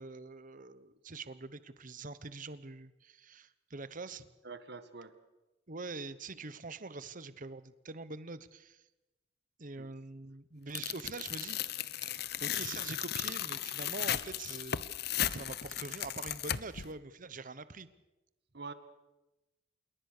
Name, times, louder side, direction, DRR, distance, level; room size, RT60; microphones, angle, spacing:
voice 1, 0.0-4.3 5.7-8.8 9.6-11.6 12.0-14.8 15.3-17.9, right 3 dB, 45° right, 14 dB, 1.1 m, -44 dB
voice 2, 4.4-5.1 9.8-9.9 18.5-18.7, right 4 dB, 60° right, 10 dB, 1.9 m, -45 dB
Tearing, 10.7-16.9, left 11 dB, 60° left, 0.8 m, -36 dB
27.5 x 22.0 x 6.7 m, 1.0 s
head